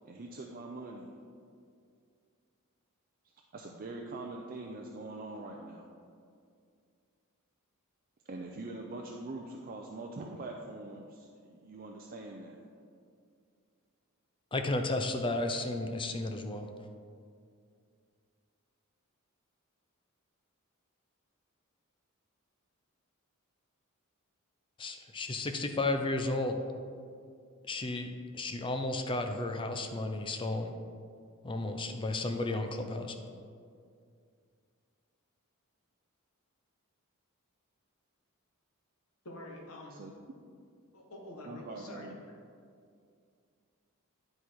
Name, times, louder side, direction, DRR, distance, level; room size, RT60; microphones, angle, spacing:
voice 1, 0.0-1.1 3.5-5.9 8.3-12.6 39.9-40.1 41.5-42.2, right 2 dB, 40° right, 1 dB, 0.5 m, -43 dB
voice 2, 14.5-16.7 24.8-26.6 27.7-30.7 31.4-33.2, left 2 dB, 25° left, 6 dB, 0.5 m, -33 dB
voice 3, 39.2-40.0 40.9-42.1, left 1 dB, 70° left, -1 dB, 1.5 m, -47 dB
10.5 x 4.3 x 4.6 m, 2.3 s
head